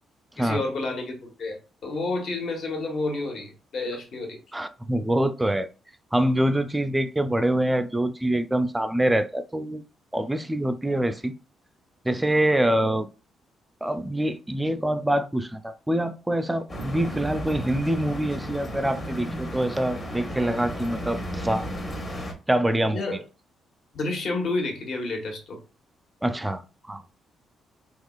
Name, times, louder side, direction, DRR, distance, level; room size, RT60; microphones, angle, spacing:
voice 1, 0.4-1.6 1.8-4.4 22.9-23.2 23.9-25.6, left 2 dB, 60° left, 1.1 m, -30 dB
voice 2, 4.5-5.7 6.1-9.8 10.1-11.3 12.0-13.1 13.8-21.7 22.5-23.2 26.2-27.2, right 1 dB, 10° right, 0.4 m, -25 dB
sound 1, 16.7-22.3, equal, 35° left, 1.1 m, -34 dB
3.7 x 2.9 x 2.3 m
cardioid pair, 90°, 0 cm